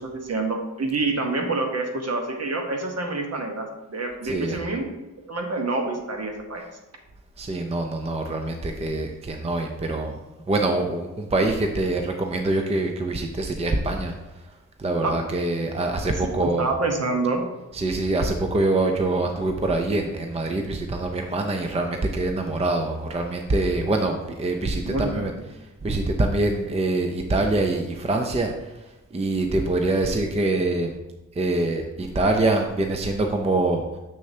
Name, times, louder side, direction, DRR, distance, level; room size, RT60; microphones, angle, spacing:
voice 1, 0.0-6.6 15.0-15.2 16.4-17.4 24.8-25.4, right 3 dB, 55° right, 3 dB, 1.1 m, -27 dB
voice 2, 4.2-4.6 7.4-10.2 10.5-14.1 14.8-16.7 17.7-25.3 25.8-28.7 29.1-30.9 31.4-33.8, right 2 dB, 20° right, 4 dB, 0.5 m, -24 dB
6.7 x 6.3 x 2.8 m, 1.0 s
wide cardioid pair, 105°, 31 cm